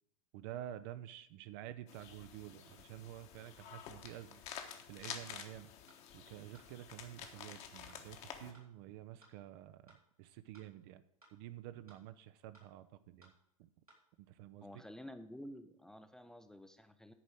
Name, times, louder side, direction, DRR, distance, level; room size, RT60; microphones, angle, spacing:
voice 1, 0.3-4.4 4.9-5.7 6.1-11.0 11.3-13.3 13.6-13.7 14.2-14.8, right 12 dB, 40° right, 12 dB, 0.6 m, -50 dB
sound 1, 1.9-8.5, left 8 dB, 35° left, 1.2 m, -50 dB
sound 2, 5.9-6.0 6.5-6.7 7.2-7.3 7.9-8.0 8.5-8.7 9.2-9.3 9.9-10.0 10.5-10.7 11.2-11.3 11.9-12.0 12.5-12.7 13.2-13.3 13.9-14.0, right 2 dB, 90° right, 2.8 m, -63 dB
voice 2, 14.6-17.1, equal, 5° left, 9 dB, 0.5 m, -51 dB
10.0 x 5.1 x 7.6 m, 0.76 s
figure-of-eight pair, 90°, 18 cm